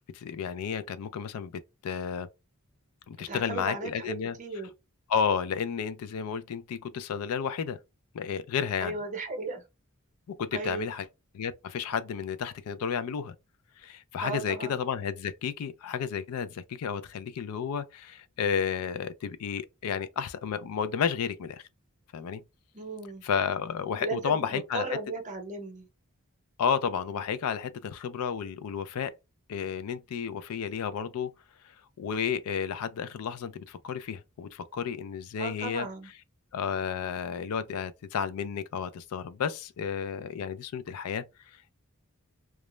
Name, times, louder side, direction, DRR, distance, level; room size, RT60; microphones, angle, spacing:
voice 1, 0.1-2.3 3.1-4.4 5.1-7.8 8.1-8.9 10.3-11.1 11.3-13.3 13.8-21.6 22.1-22.4 23.2-25.0 26.6-29.1 29.5-31.3 32.0-35.9 36.5-41.2, left 7 dB, 75° left, 0.4 m, -32 dB
voice 2, 3.2-4.7 8.8-9.6 10.5-10.9 14.2-14.8 22.7-23.2 24.0-25.9 35.4-36.1, right 3 dB, 35° right, 0.7 m, -36 dB
2.3 x 2.0 x 3.0 m
head